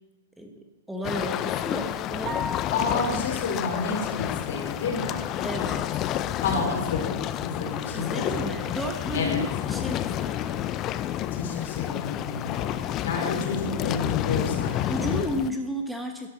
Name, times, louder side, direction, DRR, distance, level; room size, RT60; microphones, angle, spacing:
voice 1, 0.4-2.5 5.4-5.9 7.9-10.7 14.8-16.3, equal, ahead, 3 dB, 1.1 m, -33 dB
sound 1, 1.0-15.5, left 12 dB, 35° left, 0.5 m, -30 dB
sound 2, 2.3-3.3, left 2 dB, 30° right, 2.6 m, -35 dB
voice 2, 2.7-5.2 6.4-8.5 9.1-9.4 11.3-14.8, left 4 dB, 65° left, 1 dB, 3.8 m, -30 dB
11.5 x 11.5 x 4.1 m, 1.2 s
hypercardioid pair, 115°, 0 cm